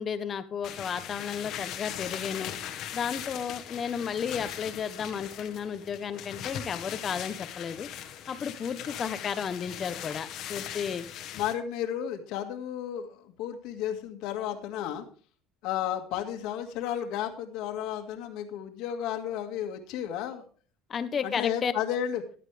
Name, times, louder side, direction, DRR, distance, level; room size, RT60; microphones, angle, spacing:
voice 1, 0.0-2.5 2.9-7.9 8.3-11.1 20.9-21.7, left 7 dB, 30° left, 12 dB, 1.0 m, -33 dB
sound 1, 0.6-11.5, left 10 dB, 50° left, 1.4 m, -40 dB
voice 2, 11.4-15.0 15.6-20.4 21.2-22.2, left 10 dB, 65° left, 6 dB, 1.9 m, -33 dB
14.5 x 10.5 x 3.4 m, 0.40 s
cardioid pair, 145°, 0 cm